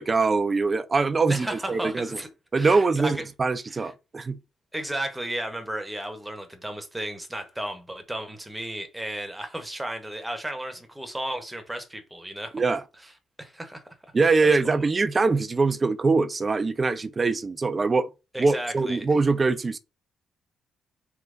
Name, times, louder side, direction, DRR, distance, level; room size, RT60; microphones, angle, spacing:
voice 1, 0.0-2.2 2.5-4.4 12.5-12.8 14.1-18.1 18.4-19.8, right 4 dB, 30° right, 0.4 m, -23 dB
voice 2, 1.3-2.3 2.5-3.2 3.7-3.9 4.7-12.6 13.4-13.8 14.4-14.8 18.3-19.1, right 1 dB, 10° right, 0.8 m, -34 dB
3.4 x 2.8 x 2.5 m
cardioid pair, 90°, 0 cm